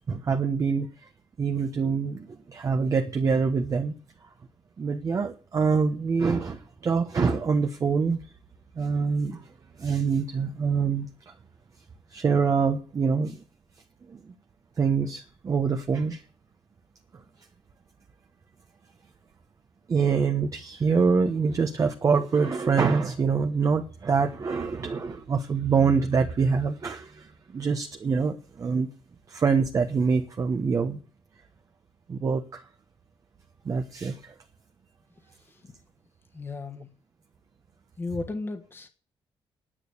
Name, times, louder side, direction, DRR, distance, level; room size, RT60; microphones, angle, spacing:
voice 1, 0.1-1.1 1.4-3.9 4.8-8.2 8.8-9.5 9.8-11.1 12.1-13.4 14.1-14.2 14.8-16.2 19.9-28.9 29.3-31.0 32.1-32.6 33.6-34.3, right 5 dB, 35° right, 1.1 m, -25 dB
voice 2, 35.3-35.7 36.3-36.9 38.0-38.9, left 3 dB, 25° left, 1.5 m, -35 dB
10.0 x 8.9 x 8.3 m
cardioid pair, 140°, 9 cm